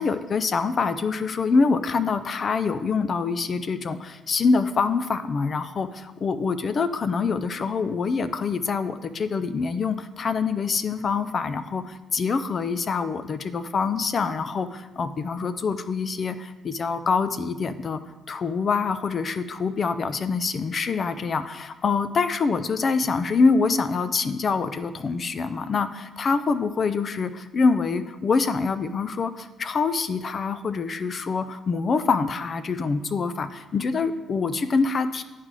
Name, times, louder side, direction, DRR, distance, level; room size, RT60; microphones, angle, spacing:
voice 1, 0.0-18.0 18.3-35.2, left 4 dB, 45° left, 12 dB, 0.4 m, -25 dB
11.0 x 3.8 x 3.2 m, 1.1 s
cardioid pair, 90°, 0 cm